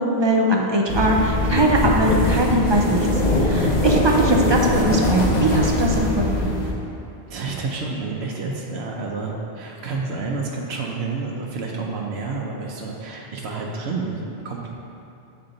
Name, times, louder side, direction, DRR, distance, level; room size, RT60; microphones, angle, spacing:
voice 1, 0.0-3.1 3.4-6.6, right 1 dB, 40° right, 0 dB, 0.4 m, -21 dB
sound 1, 0.9-6.7, left 1 dB, 45° left, 0.9 m, -21 dB
voice 2, 7.3-14.7, right 3 dB, 85° right, -1 dB, 0.9 m, -29 dB
7.1 x 4.4 x 3.9 m, 2.8 s
omnidirectional pair, 1.1 m